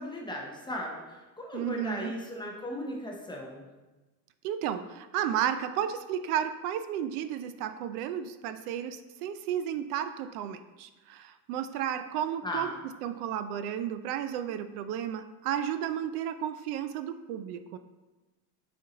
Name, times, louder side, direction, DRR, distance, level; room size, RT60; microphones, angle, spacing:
voice 1, 0.0-3.7 12.4-12.8, left 1 dB, 10° left, -1 dB, 0.5 m, -37 dB
voice 2, 1.5-2.1 4.4-12.7 13.0-17.8, right 10 dB, 65° right, 10 dB, 0.5 m, -33 dB
6.6 x 4.3 x 3.8 m, 1.2 s
supercardioid pair, 135°, 50 cm